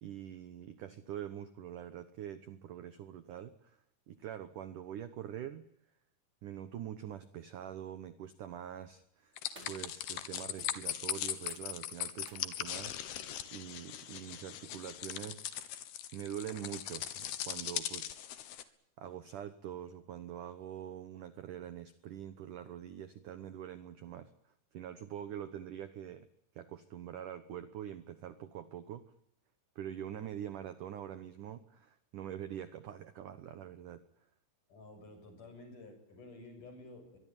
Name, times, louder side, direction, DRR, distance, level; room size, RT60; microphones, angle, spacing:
voice 1, 0.0-3.8 4.1-5.7 6.4-13.2 13.5-15.5 16.1-18.3 19.0-24.3 24.7-26.3 26.6-29.0 29.8-34.0, right 10 dB, 75° right, 12 dB, 1.9 m, -44 dB
sound 1, 8.7-9.0 9.4-9.9 10.2-10.3 10.6-13.0 15.0-15.1, right 3 dB, 25° right, 4.9 m, -59 dB
sound 2, 9.4-18.6, left 11 dB, 65° left, 3.1 m, -40 dB
voice 2, 34.7-37.2, left 2 dB, 40° left, 7 dB, 8.4 m, -52 dB
23.5 x 23.5 x 9.2 m, 0.74 s
omnidirectional pair, 5.5 m